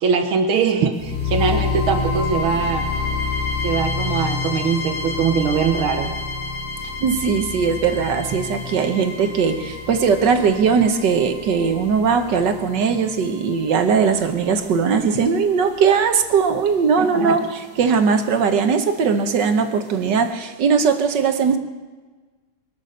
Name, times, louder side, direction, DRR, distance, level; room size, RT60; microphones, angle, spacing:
voice 1, 0.0-2.9 3.6-6.1 17.0-17.4, right 6 dB, 80° right, 1.9 m, -21 dB
sound 1, 1.0-15.0, left 4 dB, 5° left, 2.7 m, -28 dB
voice 2, 7.0-21.6, right 6 dB, 60° right, 1.6 m, -19 dB
23.5 x 8.1 x 6.6 m
omnidirectional pair, 2.2 m